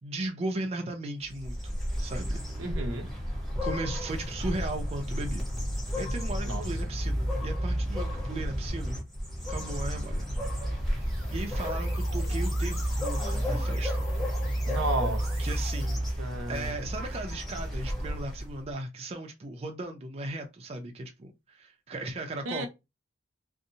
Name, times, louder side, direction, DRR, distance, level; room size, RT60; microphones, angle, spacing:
voice 1, 0.0-2.4 3.2-5.4 6.0-9.0 9.5-10.3 10.6-14.0 15.4-22.7, right 2 dB, 30° right, 0.4 m, -37 dB
sound 1, 1.3-18.6, equal, ahead, 0.9 m, -33 dB
voice 2, 2.6-3.1 6.5-6.6 14.6-15.3 16.2-16.7 22.5-22.7, right 2 dB, 80° right, 0.6 m, -32 dB
sound 2, 10.2-18.7, right 1 dB, 40° left, 0.8 m, -33 dB
sound 3, 10.7-16.0, left 3 dB, 60° left, 1.3 m, -47 dB
2.6 x 2.0 x 2.6 m
head